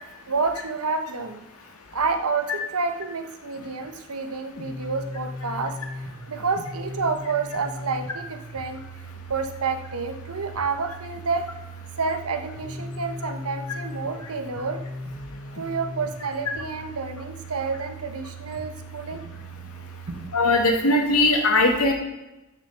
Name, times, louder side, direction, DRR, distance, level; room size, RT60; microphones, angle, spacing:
voice 1, 0.3-1.4 1.9-8.8 9.3-11.6 12.0-14.8 15.5-19.4 20.1-20.3, right 4 dB, 85° right, 6 dB, 1.2 m, -29 dB
sound 1, 4.6-20.6, equal, 70° left, 1.5 m, -38 dB
voice 2, 20.3-21.9, left 2 dB, 90° left, 2 dB, 2.1 m, -20 dB
12.5 x 6.2 x 5.9 m, 0.97 s
head